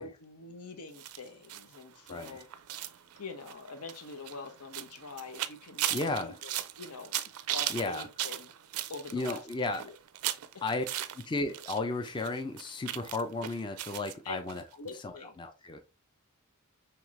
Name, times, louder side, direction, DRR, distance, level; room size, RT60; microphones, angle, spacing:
voice 1, 0.0-2.5 2.9-7.1 7.5-8.5 8.9-9.5 9.7-10.0 10.5-10.6 10.9-11.0 14.2-14.4 14.8-15.4, left 3 dB, 85° left, 0.8 m, -45 dB
sound 1, 0.9-11.8 12.1-14.1 14.5-14.6 14.9-15.0, right 13 dB, 80° right, 0.4 m, -38 dB
voice 2, 2.1-2.4 5.9-6.4 7.7-8.1 9.1-9.8 10.6-10.8 11.2-14.6 15.0-15.1 15.4-15.8, left 2 dB, 20° left, 0.4 m, -34 dB
4.7 x 3.2 x 2.4 m
head